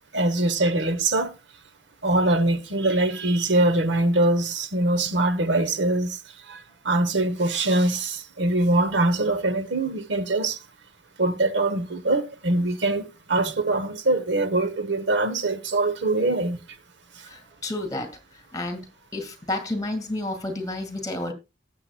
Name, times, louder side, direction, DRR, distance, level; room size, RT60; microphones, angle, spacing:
voice 1, 0.1-1.3 2.0-6.2 6.5-10.6 11.2-16.6, right 2 dB, 75° right, 1.0 m, -23 dB
voice 2, 17.2-18.9 19.1-21.3, left 1 dB, 20° left, 2.0 m, -31 dB
18.5 x 7.6 x 2.3 m
head